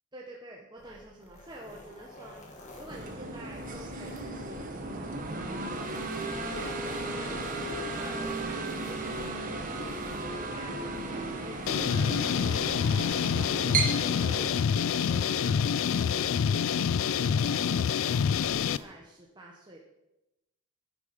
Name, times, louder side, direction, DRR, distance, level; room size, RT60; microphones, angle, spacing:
voice 1, 0.1-2.4 2.8-5.7 6.2-9.7 10.1-11.7 12.0-17.9 18.4-19.8, right 1 dB, 20° right, -2 dB, 1.2 m, -48 dB
sound 1, 0.8-18.8, left 1 dB, 35° left, 2.0 m, -52 dB
sound 2, 2.9-14.5, right 3 dB, 40° right, 1.4 m, -35 dB
sound 3, 11.7-18.8, left 7 dB, 65° left, 0.3 m, -27 dB
10.0 x 10.0 x 5.3 m, 0.92 s
head